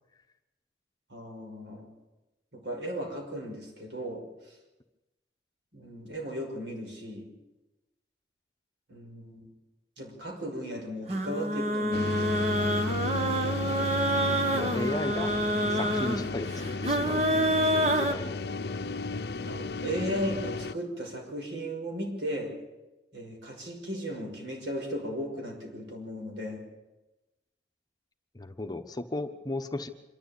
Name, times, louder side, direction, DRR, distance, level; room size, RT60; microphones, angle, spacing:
voice 1, 1.1-1.9 2.5-4.6 5.7-7.3 8.9-9.5 10.0-12.3 19.4-22.6 23.1-26.6, equal, 90° right, 1 dB, 5.8 m, -36 dB
sound 1, 11.1-18.1, right 1 dB, 40° right, 1.3 m, -27 dB
sound 2, 11.9-20.7, left 3 dB, 65° left, 0.6 m, -34 dB
voice 2, 12.8-13.9 14.5-15.4 15.7-16.5 16.8-18.3 28.3-29.9, left 1 dB, 20° left, 6 dB, 1.1 m, -35 dB
26.0 x 12.5 x 8.6 m, 1.0 s
head